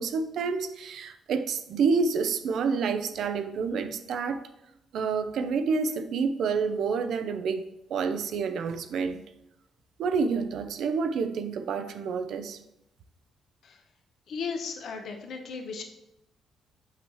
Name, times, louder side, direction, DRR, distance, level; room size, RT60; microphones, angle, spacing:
voice 1, 0.0-4.4 4.9-7.6 7.9-9.2 10.0-12.6, right 5 dB, 70° right, 10 dB, 0.6 m, -28 dB
voice 2, 14.3-15.8, left 5 dB, 60° left, 3 dB, 0.9 m, -35 dB
7.0 x 5.7 x 3.2 m, 0.83 s
cardioid pair, 105°, 0 cm